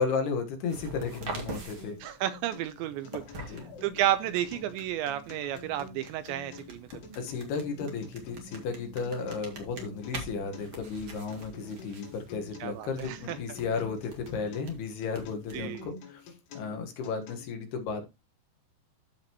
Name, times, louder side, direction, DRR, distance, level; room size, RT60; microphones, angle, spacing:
voice 1, 0.0-2.0 3.4-3.7 7.2-18.1, left 5 dB, 65° left, 3.0 m, -34 dB
sound 1, 0.7-15.8, right 3 dB, 50° right, 1.5 m, -46 dB
Acoustic guitar, 1.5-17.5, left 4 dB, 85° left, 5.0 m, -49 dB
voice 2, 2.0-3.2 3.8-6.9 12.6-13.4 15.5-15.9, right 12 dB, 85° right, 2.8 m, -31 dB
sound 2, 2.8-14.7, left 3 dB, 50° left, 3.0 m, -54 dB
14.0 x 5.1 x 2.9 m
omnidirectional pair, 5.4 m